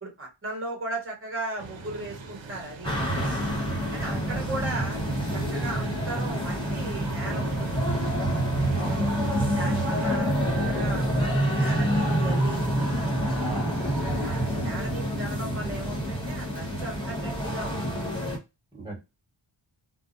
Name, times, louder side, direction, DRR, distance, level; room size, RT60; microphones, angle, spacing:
voice 1, 0.0-3.5 3.9-5.0 5.3-7.8 8.9-9.2 9.6-10.3 10.6-12.6 14.2-18.0, right 2 dB, 25° right, 1.2 m, -37 dB
sound 1, 1.6-10.2, right 3 dB, 65° right, 0.7 m, -41 dB
sound 2, 2.8-18.4, right 1 dB, 10° left, 1.2 m, -27 dB
voice 2, 4.0-4.5 8.7-9.4 13.3-14.1 18.7-19.0, right 2 dB, 10° right, 1.4 m, -38 dB
2.5 x 2.0 x 2.5 m
wide cardioid pair, 80°, 49 cm